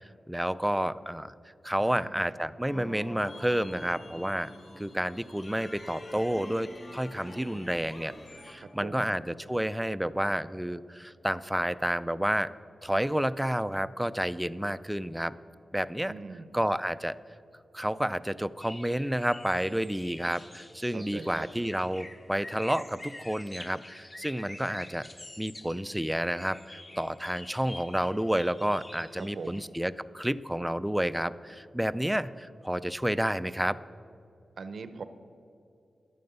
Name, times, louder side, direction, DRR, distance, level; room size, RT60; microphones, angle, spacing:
voice 1, 0.3-1.3 1.6-4.5 4.8-8.1 8.4-12.5 12.8-15.3 15.7-16.1 16.5-17.2 17.7-25.1 25.4-33.8, equal, 5° right, 15 dB, 0.3 m, -30 dB
voice 2, 1.8-2.2 8.6-9.2 16.1-16.5 20.9-21.5 29.2-29.7 34.6-35.0, right 4 dB, 70° right, 11 dB, 0.7 m, -42 dB
sound 1, 2.7-8.5, left 1 dB, 45° left, 2.1 m, -46 dB
sound 2, 18.6-29.7, left 1 dB, 20° left, 0.8 m, -48 dB
11.5 x 9.3 x 6.7 m, 2.6 s
wide cardioid pair, 130°, 0 cm